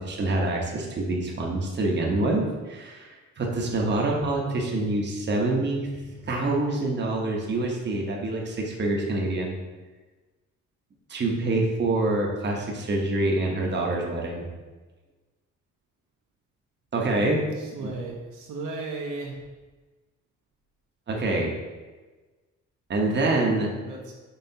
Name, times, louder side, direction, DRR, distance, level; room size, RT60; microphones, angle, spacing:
voice 1, 0.0-9.6 11.1-14.5 16.9-17.4 17.8-17.9 21.1-21.5 22.9-23.7, right 2 dB, 35° right, -1 dB, 0.9 m, -26 dB
voice 2, 17.6-19.4 23.8-24.1, right 3 dB, 80° right, -1 dB, 0.9 m, -35 dB
5.6 x 3.3 x 2.7 m, 1.3 s
cardioid pair, 90°, 30 cm